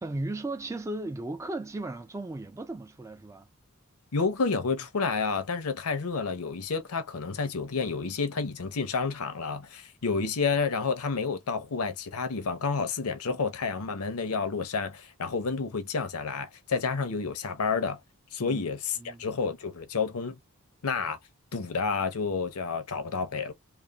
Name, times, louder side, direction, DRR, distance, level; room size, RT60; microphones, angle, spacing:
voice 1, 0.0-3.5 18.4-18.6 19.0-19.2, right 2 dB, 15° right, 0.3 m, -36 dB
voice 2, 4.1-18.0 18.3-20.4 20.8-21.2 21.5-23.5, left 4 dB, 80° left, 0.7 m, -30 dB
3.2 x 2.1 x 2.3 m
head